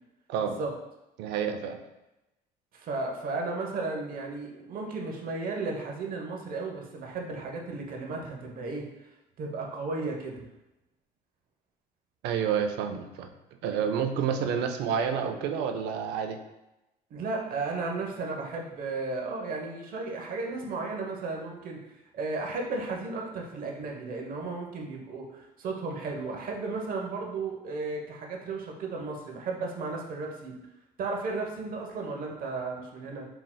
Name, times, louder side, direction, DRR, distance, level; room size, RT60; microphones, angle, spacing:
voice 1, 1.2-1.8 12.2-13.3 13.6-16.4, right 7 dB, 90° right, 6 dB, 0.5 m, -29 dB
voice 2, 2.7-8.9 9.4-10.4 17.1-21.8 22.1-30.6 31.0-33.3, right 3 dB, 55° right, 1 dB, 0.9 m, -34 dB
4.4 x 3.8 x 2.2 m, 0.95 s
cardioid pair, 110°, 17 cm